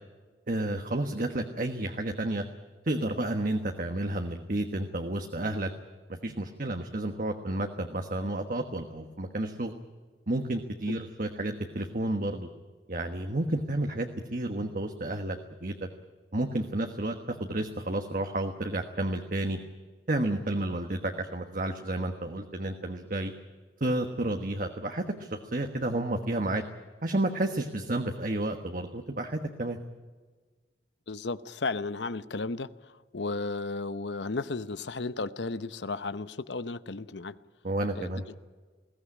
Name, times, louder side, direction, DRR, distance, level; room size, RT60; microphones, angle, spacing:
voice 1, 0.5-2.4 2.8-5.7 6.1-9.7 10.3-12.5 12.9-15.7 16.3-19.6 20.1-23.3 23.8-26.6 27.0-29.8 37.6-38.2, right 1 dB, 50° right, 1.4 m, -31 dB
voice 2, 31.1-37.4 37.9-38.2, left 3 dB, 85° left, 0.8 m, -34 dB
21.0 x 17.0 x 9.8 m
head